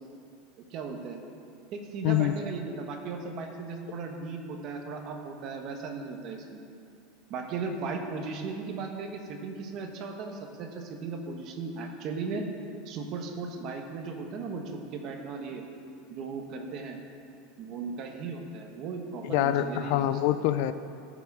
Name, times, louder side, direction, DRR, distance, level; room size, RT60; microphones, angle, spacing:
voice 1, 0.6-1.2 1.7-6.6 7.3-12.5 12.8-15.6 16.1-17.0 17.6-20.1, right 4 dB, 35° right, 3 dB, 1.1 m, -37 dB
voice 2, 2.0-2.3 19.2-20.7, left 12 dB, 55° left, 12 dB, 0.4 m, -25 dB
14.5 x 6.2 x 4.7 m, 2.5 s
supercardioid pair, 170°, 0 cm